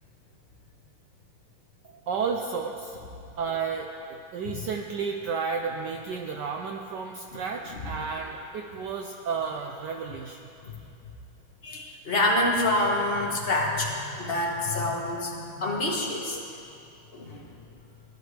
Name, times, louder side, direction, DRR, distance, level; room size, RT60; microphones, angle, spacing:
voice 1, 2.1-3.0 3.4-10.4, right 5 dB, 75° right, 3 dB, 1.0 m, -32 dB
voice 2, 11.6-16.4 17.1-17.5, left 1 dB, 30° left, -2 dB, 1.2 m, -27 dB
17.0 x 10.5 x 3.3 m, 2.6 s
omnidirectional pair, 2.4 m